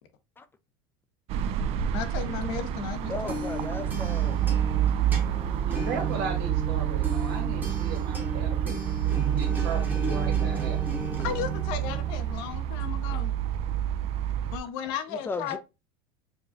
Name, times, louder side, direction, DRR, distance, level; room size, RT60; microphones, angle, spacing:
sound 1, 1.3-14.6, right 11 dB, 50° right, 0.4 m, -28 dB
voice 1, 1.9-3.4 11.2-13.3 14.5-15.6, left 8 dB, 75° left, 0.7 m, -34 dB
sound 2, 2.9-12.6, right 2 dB, 15° right, 1.1 m, -35 dB
voice 2, 3.1-4.4 15.1-15.6, left 3 dB, 15° left, 0.3 m, -35 dB
voice 3, 5.7-8.8 9.0-10.8, right 4 dB, 80° right, 1.3 m, -36 dB
4.7 x 2.3 x 2.6 m
supercardioid pair, 105°, 13 cm